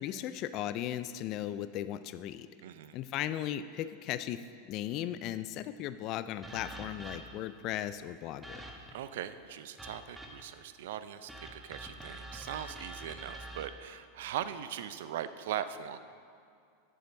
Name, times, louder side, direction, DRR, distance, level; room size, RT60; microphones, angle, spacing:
voice 1, 0.0-2.5 2.9-4.4 4.7-8.6, left 12 dB, 50° left, 13 dB, 0.3 m, -37 dB
voice 2, 2.6-3.0 8.9-16.0, right 10 dB, 70° right, 12 dB, 0.5 m, -40 dB
sound 1, 6.4-7.5 8.4-9.0 9.8-10.6 11.3-13.7, right 1 dB, 10° right, 1.3 m, -46 dB
8.3 x 7.2 x 6.4 m, 2.3 s
hypercardioid pair, 95°, 0 cm